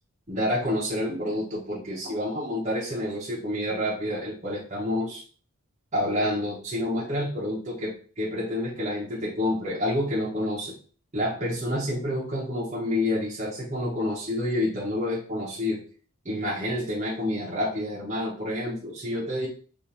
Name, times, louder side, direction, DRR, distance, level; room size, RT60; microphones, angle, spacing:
voice 1, 0.3-5.2 5.9-10.7 11.1-15.8 16.2-19.5, left 1 dB, 30° right, -7 dB, 1.0 m, -28 dB
5.1 x 2.7 x 2.9 m, 0.42 s
head